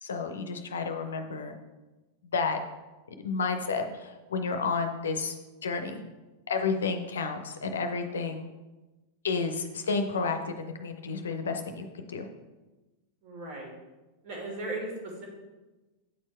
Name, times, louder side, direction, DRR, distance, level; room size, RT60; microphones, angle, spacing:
voice 1, 0.0-1.6 2.3-2.6 3.2-5.4 5.6-6.0 6.5-8.5 9.2-12.3, left 4 dB, 65° left, 7 dB, 0.6 m, -31 dB
voice 2, 13.2-13.7 14.2-15.3, right 2 dB, 50° right, -1 dB, 2.3 m, -37 dB
8.4 x 4.5 x 4.3 m, 1.1 s
figure-of-eight pair, 90°, 0 cm